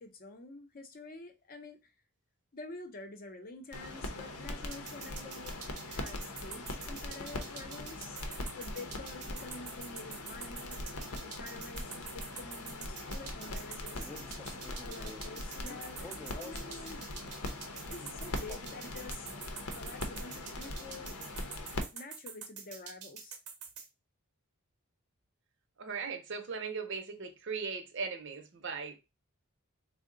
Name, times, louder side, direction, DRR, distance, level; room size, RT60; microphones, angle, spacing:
voice 1, 0.0-1.9 2.5-8.2 8.5-10.9 11.2-14.1 14.8-17.1 17.9-19.3 19.7-21.2 21.9-23.4, left 3 dB, 40° left, 0.6 m, -48 dB
sound 1, 3.7-21.8, left 2 dB, 75° left, 0.7 m, -41 dB
sound 2, 4.7-23.9, right 6 dB, 85° right, 0.8 m, -46 dB
Male speech man speaking, 13.8-17.0 18.3-19.0, left 2 dB, 10° left, 0.3 m, -50 dB
voice 2, 25.8-29.0, right 5 dB, 55° right, 0.7 m, -38 dB
3.6 x 2.1 x 3.7 m
head